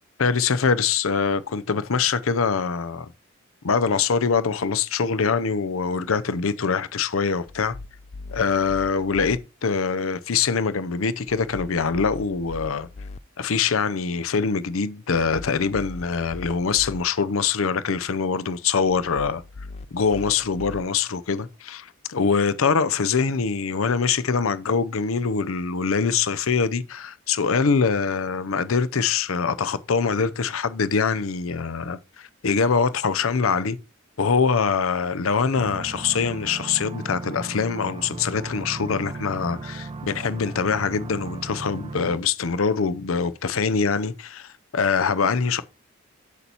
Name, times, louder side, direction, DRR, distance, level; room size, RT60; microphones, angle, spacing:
voice 1, 0.2-3.1 3.6-7.7 8.3-12.9 13.4-19.4 19.9-33.8 34.2-45.6, left 5 dB, 80° left, 0.6 m, -24 dB
sound 1, 7.5-9.4 11.3-13.2 15.1-17.0 18.9-20.8, left 3 dB, 30° left, 0.3 m, -40 dB
sound 2, 35.5-42.2, right 3 dB, 30° right, 0.5 m, -36 dB
8.3 x 6.9 x 2.9 m
head